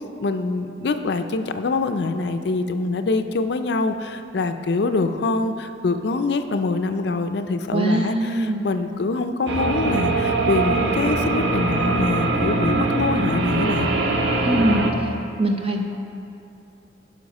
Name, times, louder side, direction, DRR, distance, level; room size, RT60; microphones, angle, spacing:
voice 1, 0.2-13.9, left 3 dB, 65° left, 8 dB, 0.4 m, -24 dB
voice 2, 7.7-8.7 14.4-15.1 15.4-15.8, right 1 dB, 30° right, 2 dB, 0.8 m, -22 dB
sound 1, 9.5-14.9, right 3 dB, 80° right, 0.8 m, -22 dB
11.5 x 5.5 x 5.3 m, 2.7 s
head